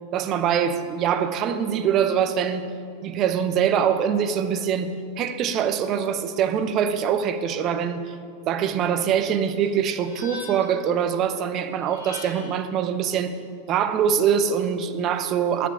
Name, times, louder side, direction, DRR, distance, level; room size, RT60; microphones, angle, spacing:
voice 1, 0.1-2.7 3.0-8.1 8.5-13.3 13.7-15.7, right 8 dB, 35° right, 10 dB, 0.8 m, -23 dB
sound 1, 9.6-10.8 11.8-12.7, left 3 dB, 60° left, 3.2 m, -41 dB
9.0 x 8.2 x 8.9 m, 2.4 s
figure-of-eight pair, 90°, 0 cm